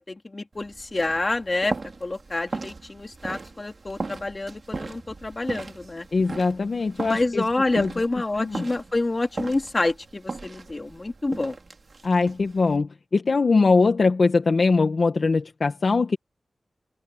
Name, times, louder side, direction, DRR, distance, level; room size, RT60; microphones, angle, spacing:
voice 1, 0.0-1.7 2.0-6.1 7.0-11.6, left 2 dB, 30° left, 3.6 m, -28 dB
sound 1, 0.5-12.8, right 3 dB, 50° right, 3.6 m, -38 dB
voice 2, 6.1-7.4 7.7-7.9 8.4-8.6 12.0-16.2, left 4 dB, 60° left, 1.5 m, -21 dB
open air
wide cardioid pair, 95°, 0 cm